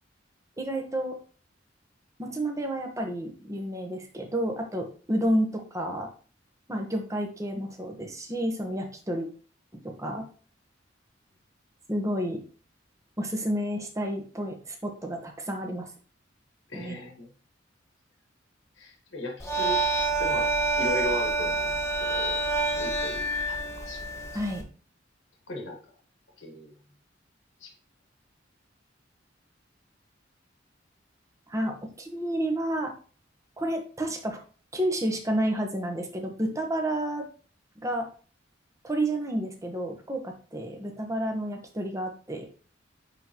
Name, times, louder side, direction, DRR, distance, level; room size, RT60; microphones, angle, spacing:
voice 1, 0.6-1.2 2.2-6.1 6.7-9.3 9.8-10.2 11.9-12.4 13.2-15.9 16.7-17.0 24.3-24.6 31.5-32.9 33.6-34.4 34.7-37.3 37.8-38.1 38.8-42.5, right 1 dB, 15° right, 3 dB, 1.1 m, -30 dB
voice 2, 16.7-17.3 18.8-19.8 20.2-20.5 20.8-22.4 22.7-24.0 25.5-25.8 26.4-26.8 27.6-27.7, left 1 dB, 85° left, 1 dB, 1.7 m, -37 dB
sound 1, 19.4-24.6, right 3 dB, 15° left, 0.9 m, -27 dB
9.8 x 3.8 x 3.0 m, 0.40 s
head